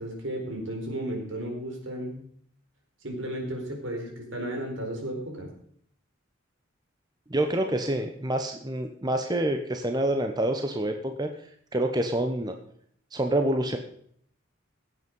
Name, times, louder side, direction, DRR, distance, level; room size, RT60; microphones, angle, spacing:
voice 1, 0.0-2.2 3.0-5.5, right 1 dB, 75° right, 2 dB, 4.4 m, -34 dB
voice 2, 7.3-11.3 11.7-12.5 13.1-13.8, right 1 dB, 20° right, 5 dB, 1.0 m, -27 dB
16.0 x 8.3 x 5.4 m, 0.63 s
head